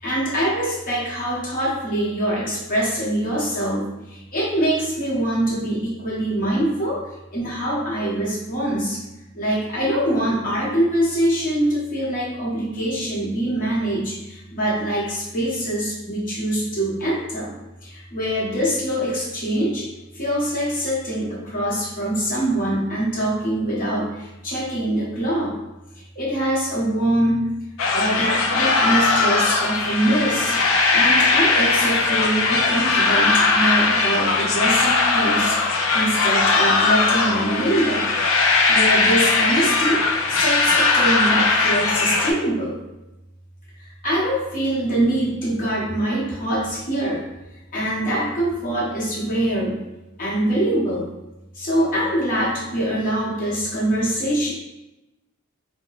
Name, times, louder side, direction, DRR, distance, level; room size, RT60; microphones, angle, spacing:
voice 1, 0.0-7.0 7.3-9.0 9.3-17.5 17.8-19.8 20.1-25.5 26.1-27.5 27.9-30.6 30.9-38.1 38.4-42.8 43.8-47.2 47.7-49.8 50.2-51.1 51.5-54.5, right 1 dB, 40° left, -7 dB, 0.9 m, -24 dB
sound 1, 27.8-42.3, left 3 dB, 65° left, 0.4 m, -19 dB
2.8 x 2.1 x 3.0 m, 0.95 s
head